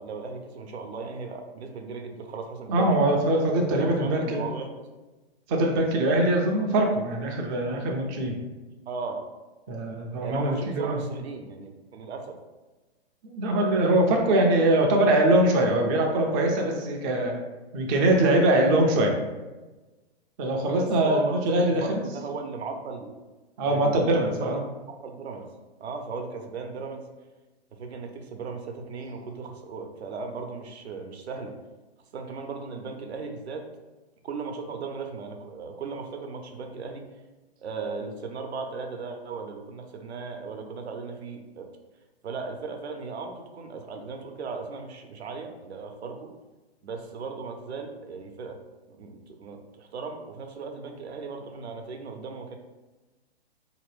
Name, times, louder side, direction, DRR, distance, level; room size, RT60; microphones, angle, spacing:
voice 1, 0.0-3.0 3.8-4.7 8.9-9.3 10.2-12.4 20.7-23.2 23.6-24.7 25.0-25.5 25.8-27.1 27.7-31.5 32.1-33.7 34.2-37.1 37.6-41.7 42.2-46.3 46.8-48.6 48.9-52.6, right 4 dB, 80° right, 4 dB, 0.8 m, -37 dB
voice 2, 2.7-4.5 5.5-8.3 9.7-11.0 13.2-17.3 17.7-19.1 20.4-22.0 23.6-24.6, right 1 dB, 20° right, 1 dB, 0.4 m, -22 dB
4.0 x 2.9 x 3.2 m, 1.2 s
hypercardioid pair, 135°, 32 cm